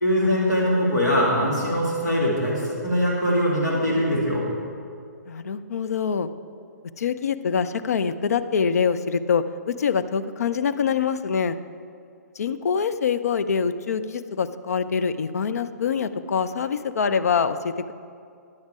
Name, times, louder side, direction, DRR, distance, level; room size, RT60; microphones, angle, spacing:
voice 1, 0.0-4.4, equal, 80° left, -5 dB, 2.3 m, -22 dB
voice 2, 5.3-6.3 7.0-11.6 12.4-17.9, left 6 dB, 60° left, 12 dB, 0.4 m, -25 dB
10.5 x 7.2 x 4.8 m, 2.3 s
figure-of-eight pair, 125°, 9 cm